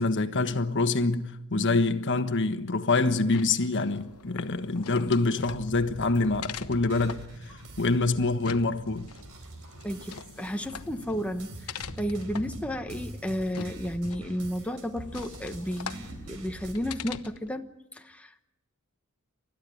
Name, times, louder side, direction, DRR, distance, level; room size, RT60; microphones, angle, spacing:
voice 1, 0.0-7.2 7.8-9.1, left 3 dB, 55° left, 1.3 m, -26 dB
sound 1, 3.1-17.6, left 6 dB, 90° left, 1.0 m, -44 dB
sound 2, 5.4-17.0, right 1 dB, 70° right, 4.7 m, -44 dB
voice 2, 9.8-18.4, equal, 5° left, 1.1 m, -33 dB
30.0 x 13.5 x 10.0 m
head